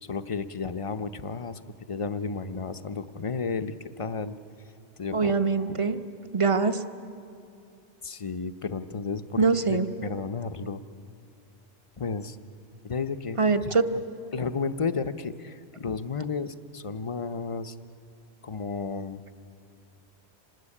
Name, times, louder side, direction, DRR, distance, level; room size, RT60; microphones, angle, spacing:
voice 1, 0.0-1.6 1.9-4.4 5.0-5.3 5.7-5.8 8.0-10.8 12.0-12.4 12.8-13.8 14.3-17.7 18.4-19.2, left 5 dB, 35° left, 10 dB, 0.7 m, -32 dB
voice 2, 5.1-6.0 6.3-6.8 9.4-9.9 13.4-13.9, right 4 dB, 30° right, 9 dB, 1.0 m, -23 dB
26.0 x 19.0 x 9.9 m, 2.5 s
omnidirectional pair, 1.2 m